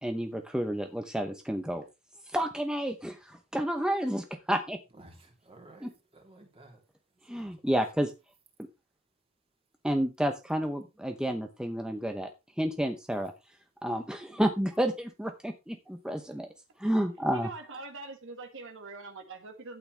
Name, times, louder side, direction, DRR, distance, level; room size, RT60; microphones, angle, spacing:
voice 1, 0.0-1.8 2.3-4.8 5.8-5.9 7.3-8.1 8.6-8.7 9.8-12.3 12.6-13.3 13.8-16.5 16.8-17.5, equal, 5° right, 0.8 m, -30 dB
voice 2, 4.9-6.8 7.3-7.8, right 2 dB, 25° right, 3.3 m, -54 dB
voice 3, 17.3-19.8, right 3 dB, 60° right, 1.8 m, -43 dB
12.0 x 8.9 x 3.3 m
head